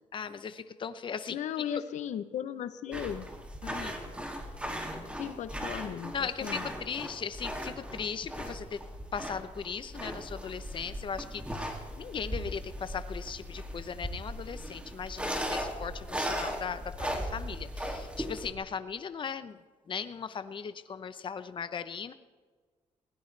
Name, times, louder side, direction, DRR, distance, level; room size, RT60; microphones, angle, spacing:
voice 1, 0.1-1.4 3.6-4.0 6.1-8.8 9.1-19.6 19.9-22.1, left 6 dB, 40° left, 12 dB, 0.8 m, -38 dB
voice 2, 1.3-3.3 5.2-6.6, left 9 dB, 80° left, 12 dB, 0.8 m, -36 dB
sound 1, 2.9-18.5, equal, 10° right, 2.4 m, -38 dB
21.0 x 17.0 x 3.3 m, 1.5 s
cardioid pair, 105°, 12 cm